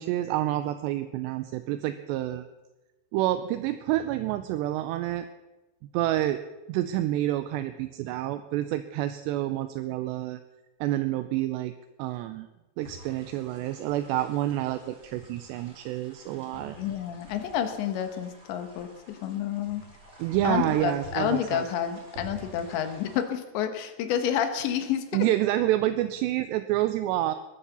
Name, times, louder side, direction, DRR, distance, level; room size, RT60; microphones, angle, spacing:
voice 1, 0.0-2.5 3.1-5.3 5.9-6.4 6.7-10.4 10.8-11.7 12.0-12.5 12.8-16.8 20.2-21.6 25.1-27.4, right 14 dB, 80° right, 10 dB, 2.7 m, -28 dB
sound 1, 12.8-23.2, right 1 dB, 15° right, 2.8 m, -49 dB
voice 2, 16.8-19.8 20.4-25.3, left 9 dB, 80° left, 8 dB, 3.5 m, -29 dB
19.5 x 10.0 x 7.0 m, 1.1 s
omnidirectional pair, 5.2 m